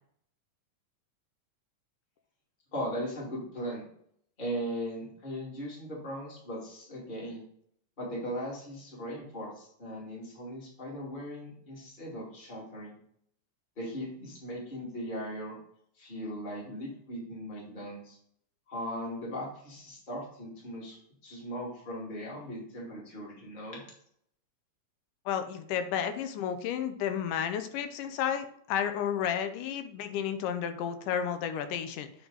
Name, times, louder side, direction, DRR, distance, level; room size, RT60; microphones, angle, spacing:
voice 1, 2.7-3.9 4.4-7.4 8.0-13.0 13.8-15.6 16.0-18.2 18.7-23.8, equal, 20° left, -3 dB, 1.9 m, -38 dB
voice 2, 25.3-32.1, left 8 dB, 80° left, 8 dB, 2.2 m, -32 dB
9.2 x 4.0 x 3.9 m, 0.66 s
omnidirectional pair, 3.8 m